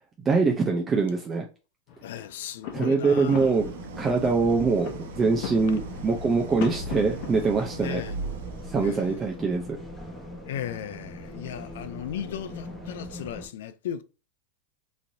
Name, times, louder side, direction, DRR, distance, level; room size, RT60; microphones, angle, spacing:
voice 1, 0.3-1.5 2.7-3.7 4.0-8.0 8.7-9.8, right 4 dB, 20° right, 0.5 m, -24 dB
sound 1, 1.9-10.5, left 8 dB, 55° left, 0.7 m, -42 dB
voice 2, 2.0-3.5 4.4-4.7 7.8-8.3 8.8-9.2 10.5-14.0, left 10 dB, 80° left, 0.4 m, -36 dB
Idling, 3.2-9.3, right 2 dB, 80° right, 0.4 m, -38 dB
sound 2, 3.6-13.5, left 1 dB, 10° left, 1.0 m, -42 dB
3.1 x 2.6 x 2.7 m
supercardioid pair, 135°, 0 cm